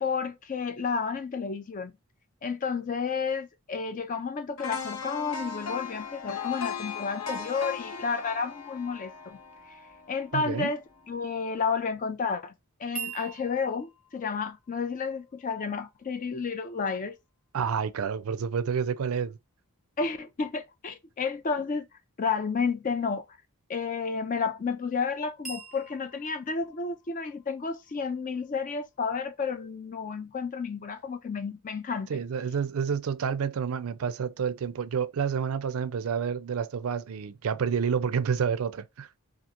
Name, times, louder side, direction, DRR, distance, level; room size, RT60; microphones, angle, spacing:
voice 1, 0.0-1.9 2.4-9.4 10.1-12.5 12.8-17.1 20.0-21.9 22.2-23.2 23.7-32.2, left 5 dB, 35° left, 0.4 m, -31 dB
sound 1, 4.6-10.6 11.0-11.1, left 6 dB, 65° left, 0.7 m, -37 dB
voice 2, 10.3-10.7 17.5-19.4 32.1-39.1, right 6 dB, 70° right, 0.4 m, -29 dB
sound 2, 12.9-17.0 25.4-29.2, right 6 dB, ahead, 1.0 m, -46 dB
2.9 x 2.4 x 2.4 m
head